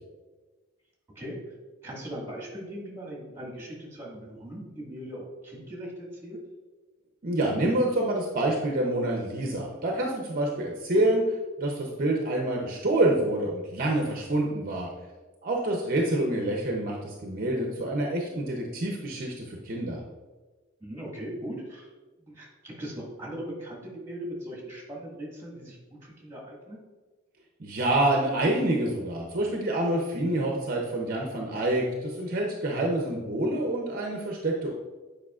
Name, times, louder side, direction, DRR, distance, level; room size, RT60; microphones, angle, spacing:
voice 1, 1.2-1.5 1.8-6.4 20.8-21.9 22.2-26.8, equal, 10° right, -3 dB, 1.8 m, -39 dB
voice 2, 7.2-11.2 11.6-14.9 15.4-20.0 27.6-34.7, right 1 dB, 45° right, 0 dB, 0.7 m, -27 dB
8.5 x 4.9 x 2.4 m, 1.3 s
head